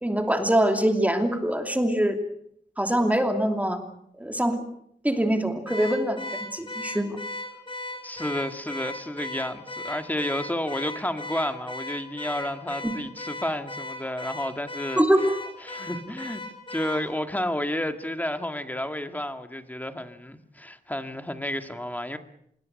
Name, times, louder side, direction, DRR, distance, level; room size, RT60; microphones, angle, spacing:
voice 1, 0.0-2.2 2.8-3.8 4.2-4.6 5.0-7.2 12.8-12.9 15.0-15.3, right 1 dB, 10° right, 5 dB, 2.8 m, -23 dB
Car / Alarm, 5.7-17.1, left 2 dB, 30° left, 4.2 m, -37 dB
voice 2, 8.0-15.0 15.6-16.4 16.7-22.2, left 1 dB, 10° left, 8 dB, 2.0 m, -31 dB
26.5 x 22.5 x 6.6 m, 0.70 s
wide cardioid pair, 110°, 18 cm